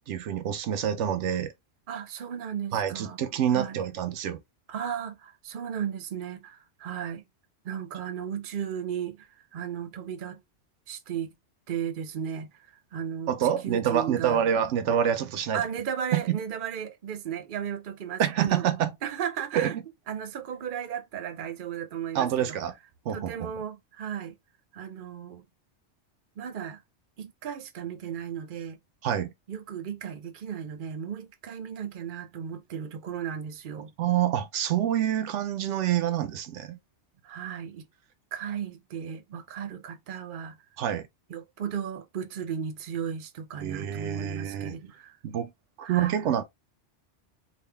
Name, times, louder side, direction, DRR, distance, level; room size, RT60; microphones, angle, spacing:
voice 1, 0.0-1.5 2.7-4.4 13.3-15.6 16.1-16.4 18.2-18.9 19.5-19.8 22.1-22.7 23.1-23.5 29.0-29.3 34.0-36.8 40.8-41.1 43.6-44.7 45.2-45.5 45.8-46.4, right 9 dB, 85° right, 0.9 m, -27 dB
voice 2, 1.9-3.2 3.5-3.8 4.7-7.2 7.6-10.4 10.9-11.3 11.7-12.5 12.9-13.3 13.6-14.4 15.5-18.6 19.0-19.8 20.1-22.6 23.1-24.3 24.7-25.4 26.4-26.8 27.2-28.8 29.5-33.9 37.2-37.8 38.3-40.6 41.3-45.2 45.8-46.2, right 8 dB, 50° right, 0.8 m, -35 dB
3.6 x 2.5 x 3.3 m
omnidirectional pair, 1.2 m